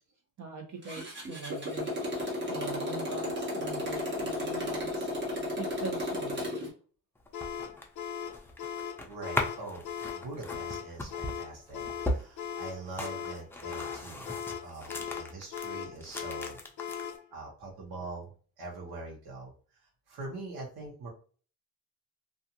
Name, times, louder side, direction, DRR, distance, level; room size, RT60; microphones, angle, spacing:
voice 1, 0.4-1.9 2.5-5.1 5.6-6.5, right 3 dB, 50° right, 2 dB, 0.9 m, -42 dB
Motorcycle, 0.8-6.7, left 1 dB, 30° right, 1.1 m, -34 dB
sound 1, 7.2-15.7 16.0-17.2, left 1 dB, 5° left, 0.4 m, -38 dB
sound 2, 7.3-17.3, left 8 dB, 55° left, 0.6 m, -39 dB
voice 2, 9.1-9.9 10.2-14.3 14.6-16.6 17.3-18.3 18.6-21.1, right 2 dB, 90° right, -3 dB, 1.1 m, -43 dB
2.5 x 2.4 x 2.8 m, 0.39 s
cardioid pair, 105°, 36 cm